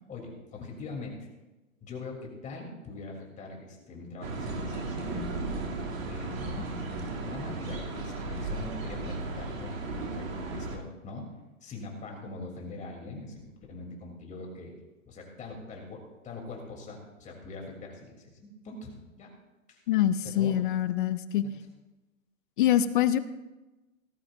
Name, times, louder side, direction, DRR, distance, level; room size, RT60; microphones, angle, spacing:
voice 1, 0.1-1.3 1.8-5.2 6.1-6.7 7.2-9.7 10.1-11.3 11.6-13.4 13.7-14.7 15.1-18.9 19.2-19.3 19.7-19.8 20.2-20.6, left 3 dB, 20° left, 0 dB, 3.3 m, -42 dB
sound 1, 4.2-10.8, right 2 dB, 70° right, 2.9 m, -35 dB
voice 2, 19.9-21.5 22.6-23.2, left 11 dB, 40° left, 14 dB, 0.5 m, -25 dB
18.5 x 13.5 x 2.6 m, 1.1 s
hypercardioid pair, 135°, 41 cm